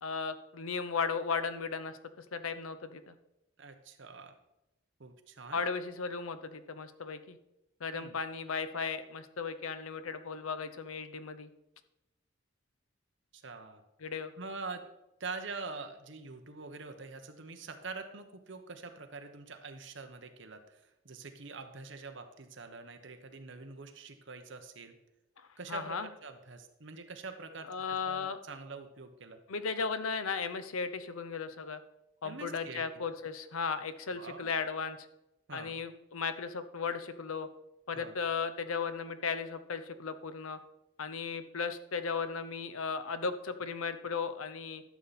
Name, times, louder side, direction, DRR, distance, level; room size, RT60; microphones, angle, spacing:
voice 1, 0.0-3.1 5.5-7.4 7.8-11.5 14.0-14.3 25.4-26.1 27.7-28.4 29.5-31.8 32.2-35.0 35.5-37.5 37.9-40.6 41.0-44.8, left 5 dB, 85° left, 11 dB, 0.7 m, -36 dB
voice 2, 3.6-4.4 5.0-5.6 7.9-8.2 13.3-13.8 14.4-14.8 15.2-25.0 25.6-29.4 32.2-33.0 34.1-34.5 35.5-35.8 37.9-38.1, right 4 dB, 60° right, 7 dB, 1.0 m, -45 dB
12.0 x 7.1 x 4.2 m, 0.90 s
head